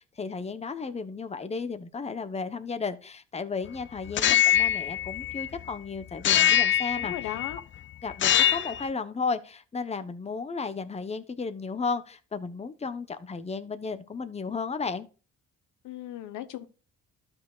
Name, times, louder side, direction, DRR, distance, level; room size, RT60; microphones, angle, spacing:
voice 1, 0.0-7.1 8.0-15.1, left 4 dB, 20° left, 0.9 m, -34 dB
sound 1, 4.1-5.7 6.2-7.6 8.1-8.8, left 11 dB, 40° left, 0.4 m, -23 dB
voice 2, 6.9-7.6 15.8-16.7, left 12 dB, 85° left, 1.1 m, -36 dB
12.5 x 5.8 x 2.4 m
cardioid pair, 90°, 30 cm